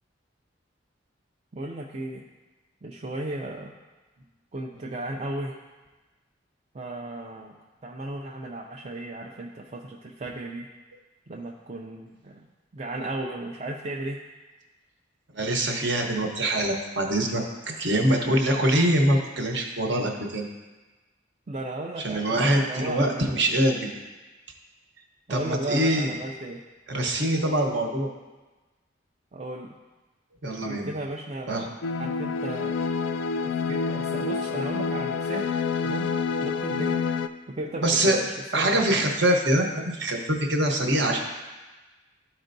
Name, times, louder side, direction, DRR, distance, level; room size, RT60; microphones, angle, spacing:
voice 1, 1.5-2.2 2.8-3.7 4.5-5.6 6.7-7.6 7.8-10.7 11.3-12.5 12.7-14.2 17.7-18.0 21.5-23.4 25.3-26.6 29.3-29.7 30.6-32.7 33.4-35.5 35.8-36.1 36.4-37.0 37.5-38.3 38.5-38.9, right 2 dB, 35° right, 0 dB, 0.4 m, -35 dB
voice 2, 15.3-20.5 22.0-23.9 25.3-26.1 26.9-28.1 30.4-30.9 31.5-31.7 37.8-38.2 38.5-41.2, right 1 dB, 65° right, 2 dB, 1.0 m, -24 dB
sound 1, 31.8-37.3, left 5 dB, 70° left, 0.3 m, -28 dB
13.0 x 4.4 x 2.6 m, 1.2 s
head